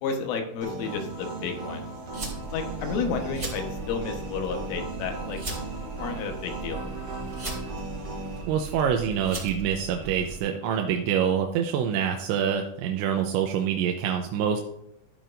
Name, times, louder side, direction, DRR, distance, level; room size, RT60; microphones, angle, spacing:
voice 1, 0.0-1.9 2.5-5.4 6.0-6.8, left 5 dB, 80° left, 4 dB, 3.7 m, -31 dB
sound 1, 0.6-8.4, right 2 dB, 35° right, 3.0 m, -37 dB
sound 2, 2.1-10.4, right 3 dB, 15° right, 3.2 m, -37 dB
voice 2, 8.5-14.6, right 8 dB, 80° right, 3 dB, 2.9 m, -26 dB
14.0 x 8.9 x 2.6 m, 0.77 s
omnidirectional pair, 5.7 m